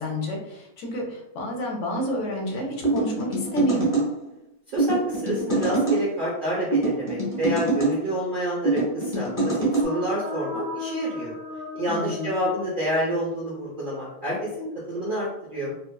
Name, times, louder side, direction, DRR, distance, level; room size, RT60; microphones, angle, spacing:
voice 1, 0.0-3.9 11.9-12.3, equal, 60° left, -1 dB, 0.9 m, -29 dB
sound 1, 2.8-4.1 4.8-6.0 6.7-7.9 8.6-9.9, right 2 dB, 15° left, 0.8 m, -24 dB
voice 2, 4.7-11.3 11.7-15.7, equal, 60° right, -6 dB, 0.5 m, -28 dB
sound 2, 9.5-13.3, left 3 dB, 80° left, 1.1 m, -36 dB
2.8 x 2.3 x 2.2 m, 0.85 s
omnidirectional pair, 1.6 m